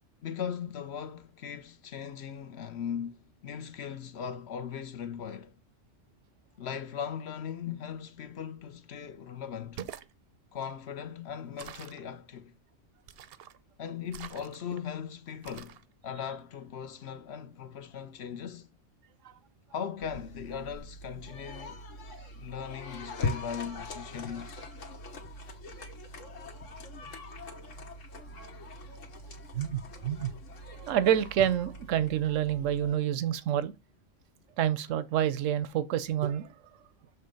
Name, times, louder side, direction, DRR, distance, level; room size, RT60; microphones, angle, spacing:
voice 1, 0.2-5.6 6.6-9.8 10.5-12.5 13.8-18.7 19.7-21.8 22.3-24.6, left 8 dB, 65° left, 0.9 m, -39 dB
sound 1, 9.6-10.1 11.6-12.0 13.1-13.6 14.1-14.8 15.4-15.8, right 10 dB, 65° right, 0.7 m, -45 dB
sound 2, 20.0-32.9, left 3 dB, 90° left, 1.6 m, -41 dB
voice 2, 29.5-30.3 30.7-33.7 34.6-36.5, right 10 dB, 85° right, 1.0 m, -28 dB
7.0 x 3.2 x 5.1 m
omnidirectional pair, 1.3 m